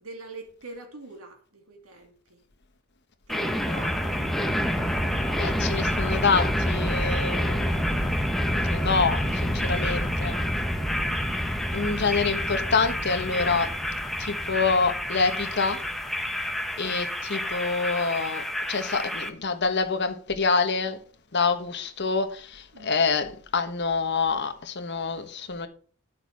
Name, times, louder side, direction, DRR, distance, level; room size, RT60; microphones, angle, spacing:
voice 1, 0.0-2.4 3.3-4.3 9.4-10.9 13.2-13.6 22.7-23.0, right 2 dB, 85° right, 2.7 m, -44 dB
sound 1, 3.3-19.3, equal, ahead, 0.9 m, -28 dB
voice 2, 5.4-8.1 8.4-10.4 11.7-13.7 14.2-15.8 16.8-21.0 21.3-25.7, left 4 dB, 55° left, 1.2 m, -26 dB
10.5 x 6.8 x 4.7 m
head